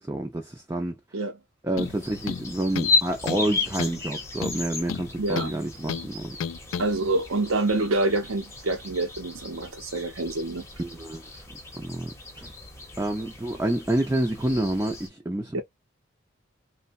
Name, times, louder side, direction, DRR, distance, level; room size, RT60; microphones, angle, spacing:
voice 1, 0.0-1.0 1.6-6.4 10.8-11.3 11.7-12.1 12.4-12.5 13.0-15.6, right 1 dB, 15° right, 0.4 m, -28 dB
sound 1, 1.8-2.0 2.3-3.0 3.3-3.5 3.8-4.0 4.4-5.6 5.9-6.1 6.4-6.9, left 6 dB, 75° left, 0.3 m, -32 dB
sound 2, 1.8-15.1, left 4 dB, 15° left, 0.8 m, -34 dB
voice 2, 5.2-5.5 6.8-10.6 15.5-15.6, right 2 dB, 85° right, 0.6 m, -26 dB
3.2 x 2.1 x 2.5 m
head